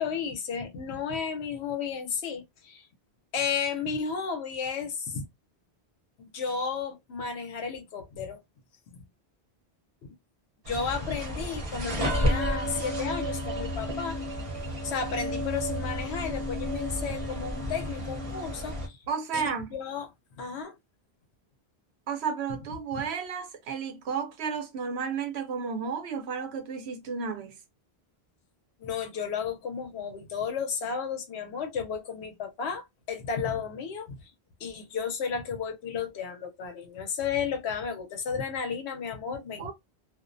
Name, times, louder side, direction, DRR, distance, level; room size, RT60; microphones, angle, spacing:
voice 1, 0.0-2.8 3.3-5.2 6.2-8.4 8.9-9.0 10.7-14.2 14.8-19.0 19.3-20.1 20.4-20.7 28.8-34.2 34.6-39.7, left 6 dB, 85° left, 0.9 m, -33 dB
sound 1, 10.6-18.9, equal, 35° right, 0.7 m, -31 dB
voice 2, 19.1-19.8 22.1-27.6 39.6-39.7, right 6 dB, 85° right, 0.9 m, -32 dB
2.5 x 2.0 x 2.5 m
omnidirectional pair, 1.1 m